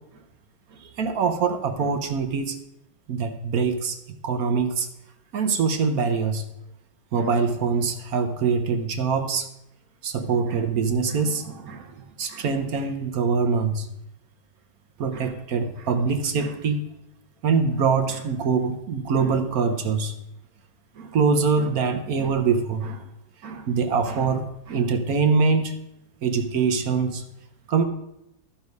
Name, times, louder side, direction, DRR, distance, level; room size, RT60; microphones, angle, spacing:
voice 1, 0.8-2.6 3.1-4.0 4.2-4.9 5.3-6.4 7.1-9.5 10.0-13.9 15.0-16.8 17.4-20.2 21.0-23.1 23.4-25.7 26.2-27.2 27.7-27.8, right 5 dB, 60° right, 7 dB, 1.1 m, -24 dB
14.0 x 4.7 x 5.3 m, 0.85 s
omnidirectional pair, 2.1 m